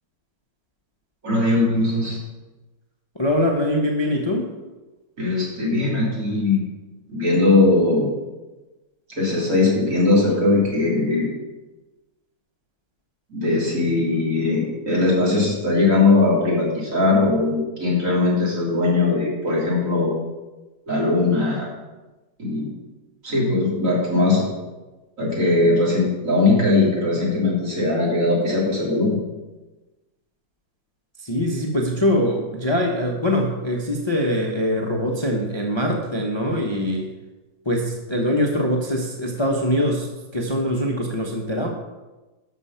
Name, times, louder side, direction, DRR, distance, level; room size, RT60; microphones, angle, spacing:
voice 1, 1.2-2.2 5.2-6.6 7.1-8.1 9.2-11.3 13.3-20.1 20.9-21.7 22.4-22.7 23.2-24.5 25.2-29.2, left 2 dB, 55° right, -4 dB, 3.6 m, -20 dB
voice 2, 3.1-4.5 31.2-37.1 37.6-41.7, equal, 20° left, 0 dB, 1.0 m, -23 dB
11.5 x 6.5 x 5.7 m, 1.1 s
omnidirectional pair, 1.7 m